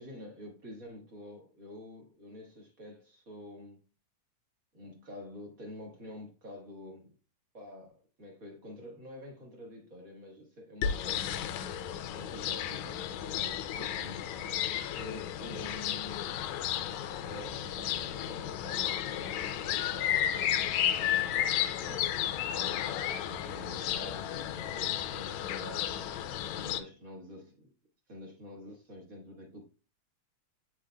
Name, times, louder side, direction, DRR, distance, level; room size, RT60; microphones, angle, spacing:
voice 1, 0.0-3.8 4.7-7.1 7.5-11.6 12.1-14.7 15.0-16.4 17.2-22.3 22.6-26.2 26.5-27.7 28.1-29.6, left 1 dB, 45° right, 0 dB, 1.1 m, -48 dB
sound 1, 10.8-26.8, left 10 dB, 80° left, 1.9 m, -33 dB
8.4 x 5.0 x 2.2 m, 0.33 s
omnidirectional pair, 3.3 m